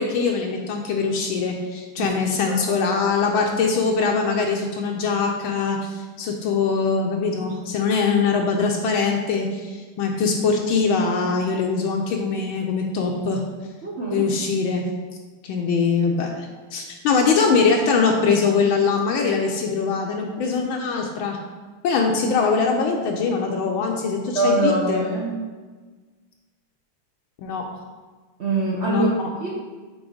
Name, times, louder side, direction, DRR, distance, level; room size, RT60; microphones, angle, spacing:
voice 1, 0.0-13.4 14.1-14.8 15.4-21.4 21.8-25.0 27.4-27.6 28.9-29.3, left 5 dB, 75° left, 1 dB, 1.4 m, -22 dB
voice 2, 13.8-14.2 24.3-25.3 28.4-29.1 29.4-29.5, right 2 dB, 55° right, -5 dB, 0.7 m, -23 dB
6.1 x 3.8 x 5.0 m, 1.4 s
omnidirectional pair, 2.3 m